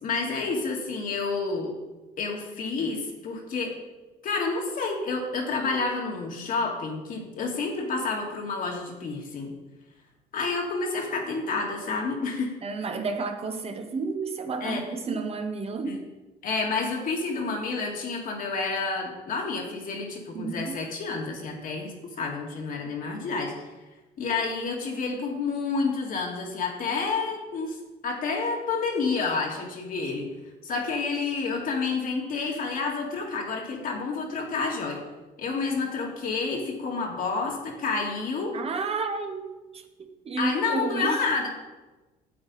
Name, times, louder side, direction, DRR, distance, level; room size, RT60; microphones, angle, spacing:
voice 1, 0.0-1.7 2.2-3.7 4.2-9.5 10.3-12.5 14.6-14.8 15.9-16.0 16.4-23.5 24.2-27.8 28.0-30.3 30.6-35.0 35.4-38.6 40.4-41.5, left 4 dB, 55° left, 0 dB, 2.0 m, -29 dB
voice 2, 12.6-16.0 20.3-20.8 38.5-41.2, right 4 dB, 35° right, 5 dB, 1.0 m, -31 dB
8.7 x 8.0 x 4.1 m, 1.1 s
cardioid pair, 110°, 17 cm